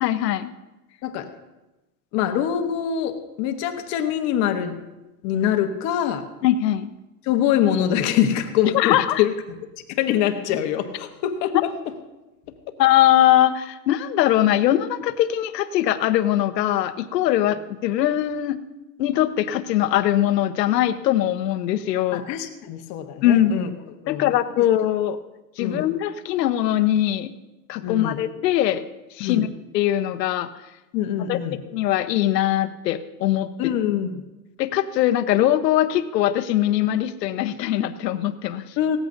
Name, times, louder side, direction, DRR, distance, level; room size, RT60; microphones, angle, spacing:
voice 1, 0.0-0.5 6.4-6.9 8.7-9.2 12.8-18.6 19.0-22.2 23.2-23.5 24.1-25.2 25.6-27.3 27.7-28.8 29.1-29.5 29.7-30.5 31.3-31.4 31.7-33.7 34.6-38.7, left 12 dB, 85° left, 11 dB, 1.1 m, -21 dB
voice 2, 2.1-4.8 5.2-6.3 7.2-9.3 10.0-11.7 22.1-23.7 24.0-24.3 24.6-24.7 25.6-25.9 27.8-28.2 29.2-29.5 30.9-31.6 33.6-34.2 38.8-39.0, left 10 dB, 35° left, 6 dB, 1.1 m, -24 dB
17.5 x 14.0 x 2.6 m, 1.0 s
supercardioid pair, 155°, 48 cm